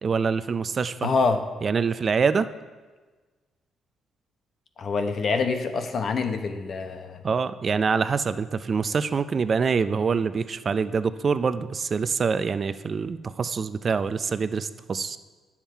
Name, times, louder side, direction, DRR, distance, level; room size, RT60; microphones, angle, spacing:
voice 1, 0.0-1.1 1.6-2.5 7.2-15.2, right 5 dB, 40° right, 13 dB, 0.4 m, -25 dB
voice 2, 1.0-1.4 4.8-7.2, left 4 dB, 50° left, 7 dB, 0.9 m, -26 dB
10.5 x 7.3 x 4.6 m, 1.3 s
cardioid pair, 90°, 0 cm